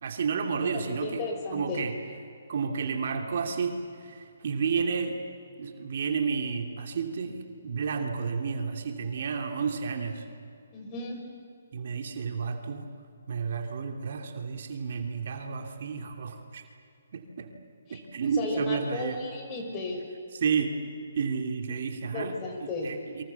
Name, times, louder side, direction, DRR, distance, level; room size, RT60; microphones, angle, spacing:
voice 1, 0.0-1.3 1.5-1.9 2.5-5.2 5.6-10.2 11.7-12.9 13.3-16.7 17.1-17.5 17.9-19.2 20.3-20.7 21.1-23.2, right 5 dB, 55° right, 4 dB, 2.9 m, -31 dB
voice 2, 0.7-1.8 10.7-11.2 17.9-18.0 18.3-20.0 22.1-22.9, left 3 dB, 25° left, 2 dB, 5.6 m, -34 dB
30.0 x 24.0 x 7.2 m, 2.3 s
hypercardioid pair, 145°, 0 cm